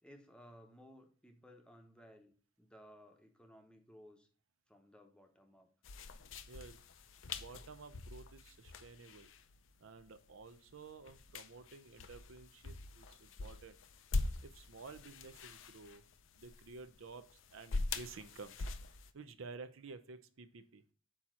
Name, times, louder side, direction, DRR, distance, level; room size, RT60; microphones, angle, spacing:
voice 1, 0.0-2.3 2.6-4.3 4.7-5.7, equal, 5° left, 4 dB, 0.8 m, -59 dB
sound 1, 5.8-19.1, left 3 dB, 65° left, 0.6 m, -44 dB
voice 2, 6.5-6.8 7.3-9.3 9.8-13.8 14.4-16.0 16.4-18.7 19.1-20.8, right 4 dB, 70° right, 11 dB, 0.6 m, -52 dB
8.5 x 2.9 x 6.1 m, 0.41 s
head